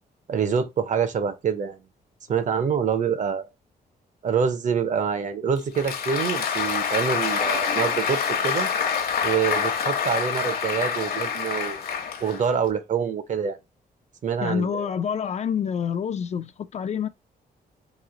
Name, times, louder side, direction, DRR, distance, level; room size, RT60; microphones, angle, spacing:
voice 1, 0.3-1.8 2.3-3.5 4.2-8.7 9.2-11.8 12.2-13.6 14.2-14.9, right 7 dB, 50° right, 0.7 m, -26 dB
Applause, 5.6-12.7, left 7 dB, 65° left, 0.9 m, -26 dB
voice 2, 14.4-17.1, left 7 dB, 45° left, 0.4 m, -27 dB
3.1 x 2.8 x 3.8 m
cardioid pair, 120°, 16 cm